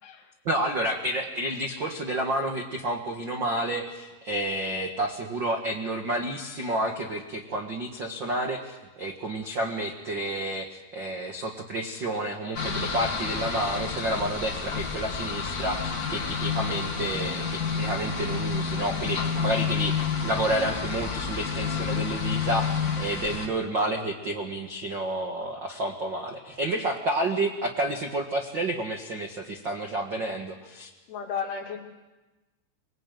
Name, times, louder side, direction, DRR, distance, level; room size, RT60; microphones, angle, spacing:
voice 1, 0.4-10.7 10.9-30.9, right 1 dB, 80° right, 3 dB, 1.0 m, -30 dB
sound 1, 12.5-23.5, left 5 dB, 35° left, 1.5 m, -29 dB
voice 2, 31.1-31.8, left 6 dB, 70° left, 1 dB, 4.5 m, -33 dB
24.5 x 20.5 x 9.2 m, 1.2 s
omnidirectional pair, 5.0 m